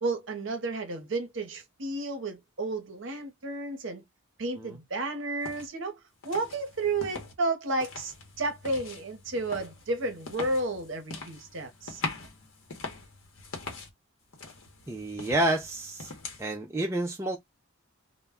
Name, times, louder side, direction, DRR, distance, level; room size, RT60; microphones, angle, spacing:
voice 1, 0.0-4.0 4.4-6.0 6.2-12.0, right 2 dB, 60° right, 0.7 m, -32 dB
sound 1, 5.4-5.7 6.2-7.3 7.7-13.9 14.3-16.4, left 3 dB, 65° left, 0.8 m, -42 dB
voice 2, 14.9-16.1 16.4-17.4, right 1 dB, 15° right, 0.3 m, -29 dB
2.1 x 2.1 x 3.4 m
head